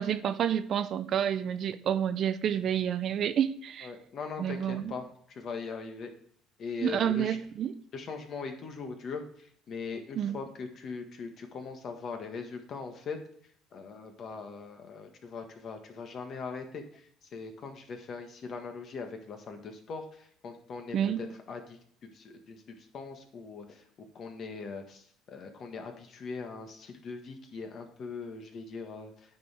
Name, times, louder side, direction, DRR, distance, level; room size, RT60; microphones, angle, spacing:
voice 1, 0.0-3.9 4.4-4.9 6.8-7.7 10.2-10.4 20.9-21.2, right 9 dB, 55° right, 12 dB, 0.6 m, -29 dB
voice 2, 3.8-6.1 6.6-7.4 7.9-9.2 9.7-13.2 13.7-17.0 17.3-21.8 22.1-22.6 22.9-29.1, left 4 dB, 50° left, 5 dB, 1.5 m, -40 dB
9.3 x 4.7 x 3.5 m, 0.64 s
cardioid pair, 105°, 0 cm